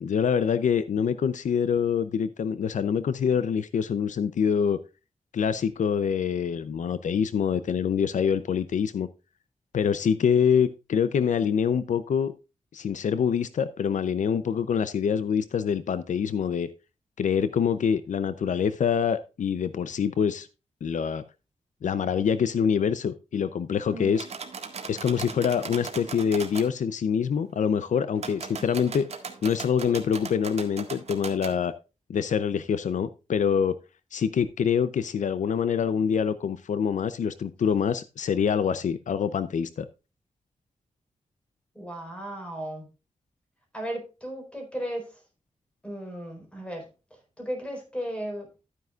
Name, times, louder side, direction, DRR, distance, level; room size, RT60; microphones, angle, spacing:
voice 1, 0.0-4.8 5.3-9.1 9.7-12.3 12.7-16.7 17.2-20.5 20.8-21.2 21.8-24.3 24.8-29.1 29.4-31.7 32.1-33.8 34.1-39.9, left 7 dB, 80° left, 14 dB, 0.6 m, -25 dB
sound 1, 24.1-26.7 28.1-31.6, right 5 dB, 55° right, 1.7 m, -38 dB
voice 2, 41.7-42.9 43.7-45.2 45.8-46.9 47.4-48.5, equal, 10° left, 2 dB, 4.5 m, -35 dB
12.0 x 9.4 x 2.4 m, 0.29 s
wide cardioid pair, 130°, 13 cm